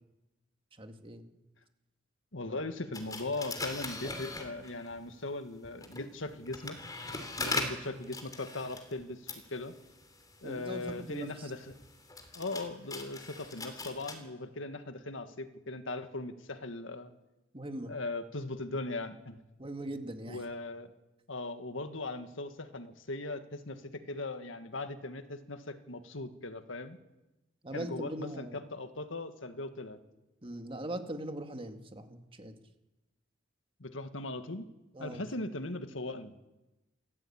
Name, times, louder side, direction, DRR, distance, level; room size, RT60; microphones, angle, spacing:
voice 1, 0.8-1.3 2.5-2.6 7.4-7.6 10.4-11.5 17.5-18.0 19.6-20.4 27.6-28.6 30.4-32.5 34.9-35.3, right 1 dB, 30° right, 6 dB, 2.1 m, -41 dB
voice 2, 2.3-6.8 7.4-9.7 10.4-11.7 12.3-17.1 17.9-19.4 20.3-20.9 21.3-27.0 27.7-30.0 33.8-34.7 35.0-36.3, left 2 dB, 85° left, 9 dB, 1.8 m, -39 dB
sound 1, 2.9-5.0 5.6-14.2, left 3 dB, 20° left, 3.2 m, -41 dB
28.5 x 14.0 x 8.8 m, 1.0 s
head